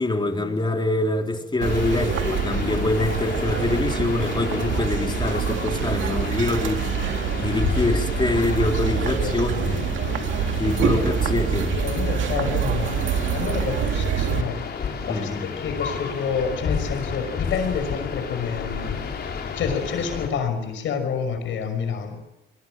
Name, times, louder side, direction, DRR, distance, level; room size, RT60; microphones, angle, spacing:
voice 1, 0.0-9.8 10.5-11.7 13.8-13.9 15.1-15.5, left 2 dB, 25° left, 3 dB, 4.0 m, -25 dB
sound 1, 1.6-20.3, left 6 dB, 55° left, 5.5 m, -31 dB
sound 2, 1.6-14.4, right 8 dB, 75° right, 2.4 m, -26 dB
voice 2, 9.0-10.2 10.9-11.4 11.7-13.0 13.3-19.0 19.6-22.2, left 6 dB, 75° left, 8 dB, 6.0 m, -29 dB
26.0 x 22.5 x 7.7 m, 0.90 s
cardioid pair, 90°, 20 cm